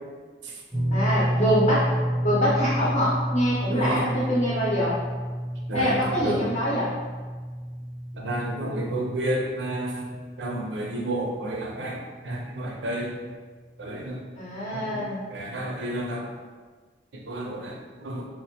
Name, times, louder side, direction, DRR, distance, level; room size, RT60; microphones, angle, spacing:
sound 1, 0.7-13.0 13.2-13.5 15.1-15.2, equal, 5° right, 0.7 m, -30 dB
voice 1, 0.9-1.9 2.2-5.0 5.7-6.9 14.4-15.2, equal, 35° left, -7 dB, 0.6 m, -24 dB
voice 2, 3.7-4.0 5.7-6.4 8.1-13.1 13.8-14.2 14.7-15.0 15.3-16.3 17.3-18.3, right 1 dB, 85° right, 0 dB, 0.6 m, -31 dB
4.2 x 2.0 x 2.8 m, 1.5 s
head